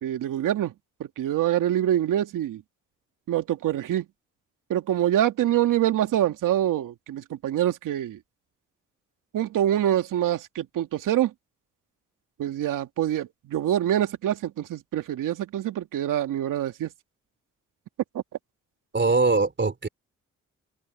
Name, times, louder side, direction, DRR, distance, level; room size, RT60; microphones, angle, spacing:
voice 1, 0.0-0.7 1.0-2.6 3.3-4.1 4.7-8.2 9.3-11.3 12.4-16.9 18.1-18.2, right 11 dB, 80° right, 2.4 m, -25 dB
voice 2, 18.9-19.9, right 3 dB, 35° right, 3.8 m, -22 dB
open air
supercardioid pair, 55°, 32 cm